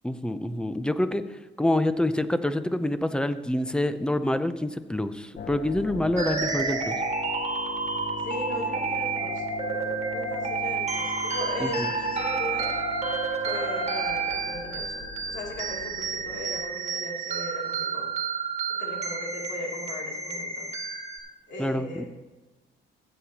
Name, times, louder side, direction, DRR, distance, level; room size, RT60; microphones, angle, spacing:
voice 1, 0.0-7.0 11.6-11.9 21.6-22.1, left 1 dB, 5° left, 11 dB, 0.6 m, -27 dB
sound 1, 5.4-16.6, left 6 dB, 50° left, 0.8 m, -41 dB
sound 2, 6.2-21.2, right 4 dB, 35° right, 1.9 m, -30 dB
voice 2, 8.2-12.7 13.4-18.1 18.7-20.7 21.5-22.1, left 1 dB, 65° left, -2 dB, 2.8 m, -38 dB
15.5 x 8.5 x 2.9 m, 1.2 s
cardioid pair, 90°, 20 cm